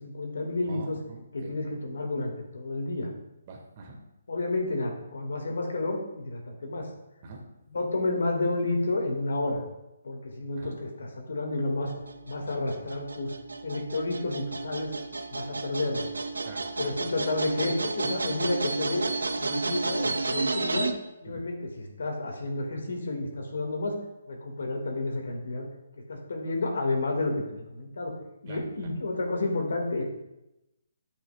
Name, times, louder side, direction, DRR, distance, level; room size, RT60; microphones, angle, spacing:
voice 1, 0.0-1.0 1.3-3.1 4.3-6.9 7.7-9.6 10.0-11.9 12.3-13.3 13.6-14.9 15.3-16.1 16.8-19.1 19.4-20.9 21.2-24.0 24.3-25.7 26.1-28.2 28.4-30.0, left 2 dB, 70° left, 2 dB, 1.8 m, -30 dB
voice 2, 0.7-1.5 3.5-4.0 7.2-7.4 10.6-10.7 16.4-16.9 21.3-21.4 28.5-28.6, right 3 dB, 40° right, 1 dB, 1.7 m, -45 dB
sound 1, 11.9-20.9, right 3 dB, 80° right, 0.6 m, -32 dB
11.5 x 5.4 x 2.3 m, 0.93 s
figure-of-eight pair, 140°, 0 cm